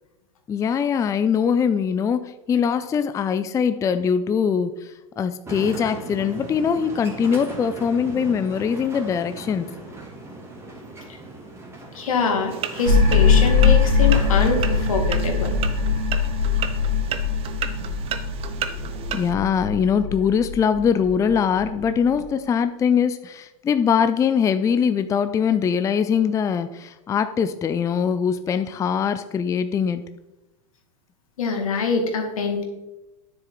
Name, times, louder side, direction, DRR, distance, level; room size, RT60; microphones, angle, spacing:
voice 1, 0.5-9.7 17.8-17.9 19.1-30.0, left 7 dB, 20° left, 10 dB, 0.4 m, -22 dB
sound 1, 5.5-14.9, right 2 dB, 15° right, 2.2 m, -38 dB
voice 2, 10.9-11.2 11.9-15.6 31.4-32.6, left 4 dB, 80° left, 3 dB, 2.1 m, -24 dB
sound 2, 12.5-19.3, right 9 dB, 35° right, 0.8 m, -33 dB
sound 3, 12.8-22.2, left 5 dB, 85° right, 2.3 m, -21 dB
9.8 x 7.2 x 4.0 m, 0.98 s
hypercardioid pair, 105°, 18 cm